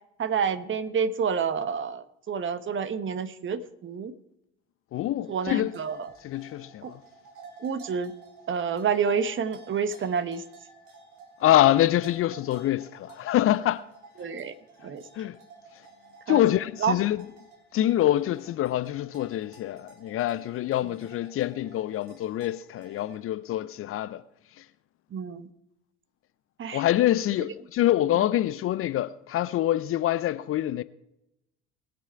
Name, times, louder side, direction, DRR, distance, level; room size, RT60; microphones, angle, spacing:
voice 1, 0.2-4.1 5.3-6.1 6.8-6.9 7.6-8.1 8.5-10.4 14.2-14.5 14.8-15.0 16.3-16.4 16.8-17.0 25.1-25.5 26.6-26.8, right 6 dB, 35° right, 1.1 m, -28 dB
voice 2, 4.9-5.7 6.2-7.0 11.4-13.8 15.2-15.4 16.3-17.2 17.7-24.2 24.6-24.7 26.7-30.8, left 13 dB, 40° left, 0.5 m, -25 dB
sound 1, 5.2-23.2, right 4 dB, 60° right, 2.6 m, -52 dB
20.0 x 6.9 x 4.7 m
figure-of-eight pair, 55°, 33 cm